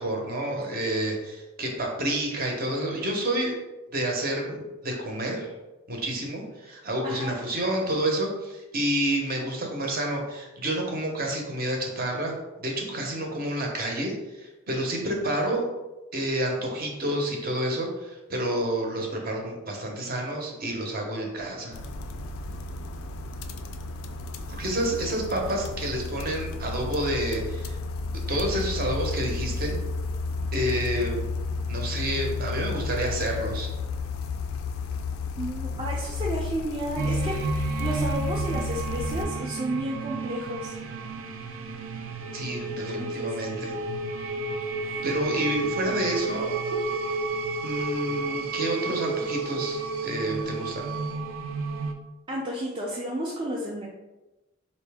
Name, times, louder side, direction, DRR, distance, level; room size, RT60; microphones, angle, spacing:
voice 1, 0.0-3.6 3.9-5.5 5.9-15.6 16.1-21.8 24.5-27.8 28.3-29.7 30.5-31.2 31.7-33.7 42.3-43.7 45.0-46.5 47.6-50.9, right 1 dB, 45° right, 1 dB, 0.8 m, -29 dB
sound 1, 21.7-39.3, left 3 dB, 90° left, 0.4 m, -32 dB
voice 2, 35.4-40.7 42.8-43.3 44.8-45.1 45.9-46.0 46.7-47.0 52.3-53.9, equal, 25° right, -4 dB, 0.4 m, -32 dB
sound 2, 37.0-51.9, right 3 dB, 80° right, 0.5 m, -31 dB
4.1 x 2.7 x 3.4 m, 1.0 s
head